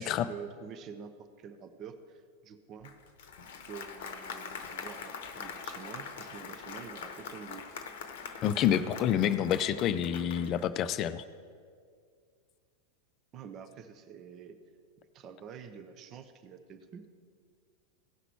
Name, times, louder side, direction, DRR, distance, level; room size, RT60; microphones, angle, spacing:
voice 1, 0.0-2.9 3.7-7.6 13.3-14.6 15.1-17.0, right 7 dB, 35° right, 8 dB, 0.6 m, -47 dB
Applause, 2.8-10.7, left 6 dB, 55° left, 0.8 m, -43 dB
voice 2, 8.4-11.2, left 10 dB, 35° left, 13 dB, 0.4 m, -28 dB
16.5 x 5.9 x 4.6 m, 2.1 s
figure-of-eight pair, 90°, 0 cm